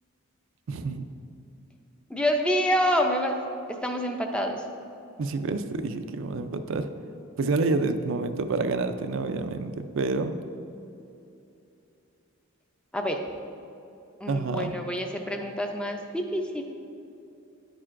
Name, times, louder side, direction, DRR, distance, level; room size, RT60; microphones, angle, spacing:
voice 1, 0.7-1.0 5.2-6.9 7.4-10.4 14.3-14.8, right 3 dB, 60° right, 8 dB, 0.4 m, -28 dB
voice 2, 2.1-3.4 3.7-4.6 12.9-13.2 14.2-16.6, equal, 5° left, 3 dB, 0.4 m, -27 dB
10.0 x 8.9 x 2.5 m, 2.7 s
head